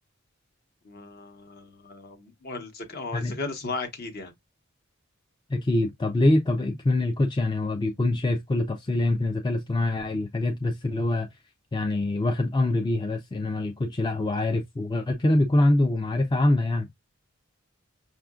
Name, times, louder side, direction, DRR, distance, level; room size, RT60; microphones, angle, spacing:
voice 1, 0.8-4.3, left 3 dB, 45° left, 1.0 m, -36 dB
voice 2, 5.5-11.3 11.7-16.9, left 2 dB, 20° left, 0.4 m, -24 dB
5.5 x 2.4 x 2.4 m
head